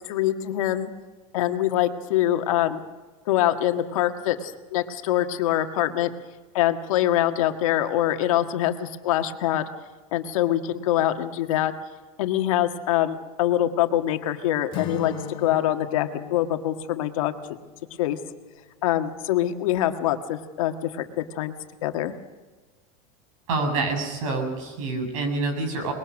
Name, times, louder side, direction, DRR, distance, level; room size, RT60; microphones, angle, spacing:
voice 1, 0.1-0.9 1.3-2.8 3.3-6.1 6.5-9.7 10.1-11.7 12.2-17.3 18.0-18.2 18.8-21.5 21.8-22.1, left 12 dB, 75° left, 6 dB, 1.7 m, -24 dB
Acoustic guitar / Strum, 14.7-18.6, left 8 dB, 30° left, 2.7 m, -38 dB
voice 2, 23.5-25.9, right 3 dB, 75° right, 5 dB, 6.9 m, -27 dB
23.0 x 21.5 x 6.4 m, 1.3 s
supercardioid pair, 175°, 17 cm